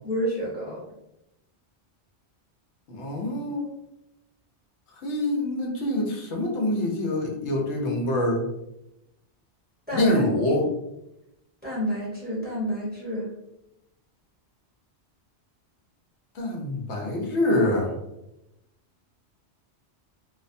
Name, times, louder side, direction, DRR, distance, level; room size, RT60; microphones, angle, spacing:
voice 1, 0.0-0.8 9.9-10.2 11.6-13.3, equal, 10° right, -7 dB, 0.7 m, -29 dB
voice 2, 2.9-3.7 5.0-8.4 9.9-10.7 16.3-17.9, left 1 dB, 80° left, -1 dB, 0.9 m, -25 dB
2.4 x 2.1 x 2.5 m, 0.88 s
omnidirectional pair, 1.1 m